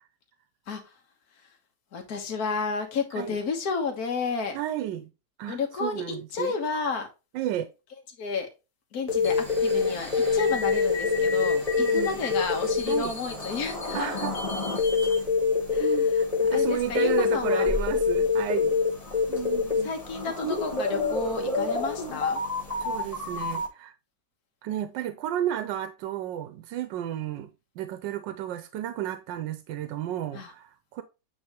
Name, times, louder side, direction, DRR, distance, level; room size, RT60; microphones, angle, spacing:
voice 1, 1.9-4.6 5.5-6.0 6.3-7.1 8.2-8.5 8.9-9.3 9.6-14.2 15.7-15.9 16.5-17.7 19.8-22.4 30.3-30.5, left 4 dB, 55° left, 1.7 m, -31 dB
voice 2, 4.5-5.1 5.4-6.5 7.3-7.7 11.8-12.2 12.9-13.2 13.9-14.4 15.8-18.8 19.3-19.9 22.8-23.9 24.6-27.5 27.8-31.0, right 11 dB, 90° right, 1.3 m, -32 dB
sound 1, 9.1-23.7, left 4 dB, 25° left, 1.2 m, -26 dB
8.8 x 3.6 x 3.0 m
omnidirectional pair, 1.9 m